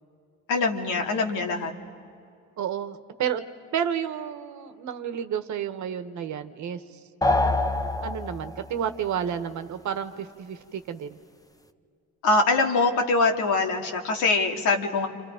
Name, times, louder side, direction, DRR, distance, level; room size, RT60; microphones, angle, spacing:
voice 1, 0.5-1.7 12.2-15.1, left 3 dB, 90° left, 2 dB, 2.3 m, -23 dB
voice 2, 2.6-3.4 3.7-7.0 8.0-11.2, right 8 dB, 70° right, 10 dB, 1.3 m, -31 dB
sound 1, 7.2-8.7, left 2 dB, 10° left, 0.9 m, -25 dB
29.0 x 27.0 x 5.1 m, 2.4 s
cardioid pair, 90°, 30 cm